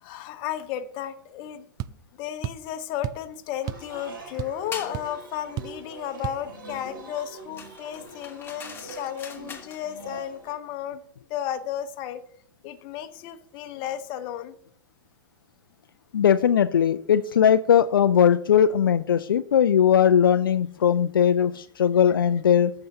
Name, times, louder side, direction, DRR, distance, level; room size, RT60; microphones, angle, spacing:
voice 1, 0.0-1.7 2.2-11.0 11.3-12.2 12.6-14.6, left 10 dB, 45° left, 9 dB, 1.0 m, -33 dB
sound 1, 1.8-2.0 2.4-2.7 3.0-3.3 3.7-3.9 4.2-4.7 4.9-5.1 5.6-5.8 6.2-6.4, right 13 dB, 35° right, 0.3 m, -32 dB
sound 2, 3.6-10.5, right 2 dB, 75° right, 3.5 m, -44 dB
sound 3, 4.7-5.0 7.6-9.8, left 6 dB, 20° left, 1.5 m, -41 dB
voice 2, 16.1-22.7, left 8 dB, 80° left, 11 dB, 0.4 m, -19 dB
14.5 x 6.7 x 2.8 m, 0.65 s
hypercardioid pair, 100°, 11 cm